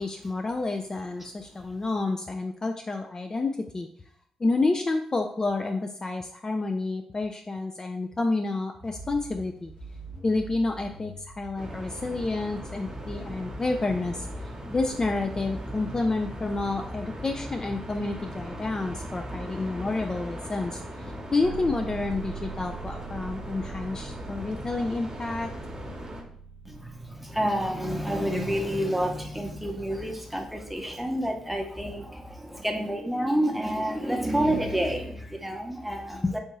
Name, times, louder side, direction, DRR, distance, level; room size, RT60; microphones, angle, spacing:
voice 1, 0.0-3.9 4.4-9.7 10.2-14.3 14.7-25.5 36.1-36.4, left 3 dB, 30° left, 4 dB, 0.3 m, -29 dB
sound 1, 8.8-23.0, right 3 dB, 65° left, 1.5 m, -47 dB
sound 2, 11.6-26.2, equal, 30° right, 1.0 m, -39 dB
sound 3, 21.4-28.3, right 7 dB, 75° right, 0.4 m, -43 dB
voice 2, 26.6-36.4, equal, 5° right, 3 dB, 0.8 m, -29 dB
3.4 x 2.6 x 3.1 m, 0.63 s
hypercardioid pair, 40°, 2 cm